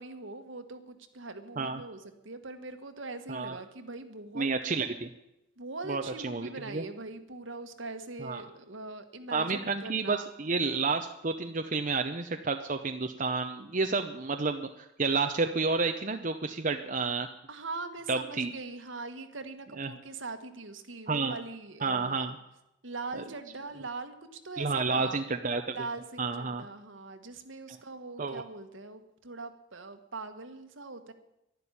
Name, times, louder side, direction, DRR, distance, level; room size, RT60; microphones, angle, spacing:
voice 1, 0.0-4.5 5.6-10.3 17.5-22.3 22.8-25.2 25.7-31.1, right 3 dB, 70° right, 8 dB, 1.6 m, -42 dB
voice 2, 4.3-5.1 5.9-6.8 8.2-8.4 9.3-17.3 18.1-18.5 19.8-19.9 21.1-21.4 21.8-22.4 23.2-23.3 24.6-25.7 26.2-26.6 27.7-27.8 28.2-28.4, right 4 dB, 40° right, 6 dB, 0.7 m, -30 dB
12.0 x 11.5 x 9.9 m, 0.90 s
head